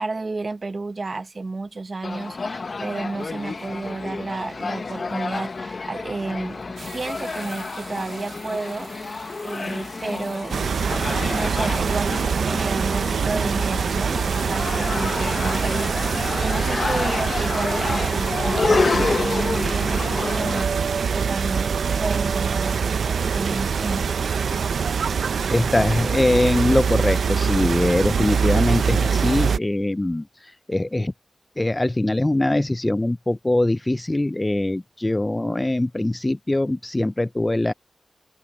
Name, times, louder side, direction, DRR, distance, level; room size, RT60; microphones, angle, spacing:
voice 1, 0.0-6.7 6.9-8.9 9.4-10.5 11.2-20.7 21.1-24.1, right 3 dB, 40° right, 0.9 m, -31 dB
sound 1, 2.0-20.6, left 4 dB, 45° left, 0.7 m, -29 dB
sound 2, 6.8-16.3, right 5 dB, 65° right, 2.4 m, -43 dB
sound 3, 10.5-29.6, right 6 dB, 90° right, 0.5 m, -24 dB
voice 2, 25.5-30.2 30.7-31.1 31.6-37.7, left 1 dB, 15° left, 0.3 m, -22 dB
open air
wide cardioid pair, 130°, 0 cm